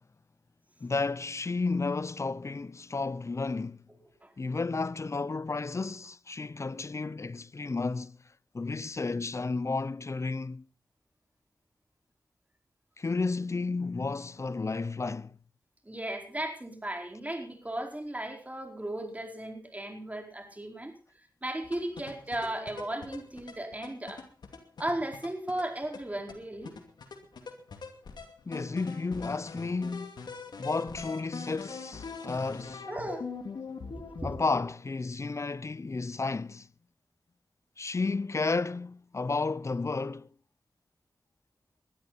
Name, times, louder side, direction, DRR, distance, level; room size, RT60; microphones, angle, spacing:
voice 1, 0.8-3.8 4.4-8.2 8.5-10.6 13.0-15.4 28.5-30.2 30.6-32.9 34.2-36.7 37.8-40.3, left 3 dB, 45° left, 0.7 m, -32 dB
voice 2, 15.8-20.9 21.4-24.2 24.8-26.7 32.9-33.3 33.9-34.3, right 1 dB, 20° right, 4.6 m, -36 dB
sound 1, 21.6-34.7, left 4 dB, 90° left, 2.5 m, -43 dB
20.5 x 12.5 x 4.2 m
cardioid pair, 55°, 7 cm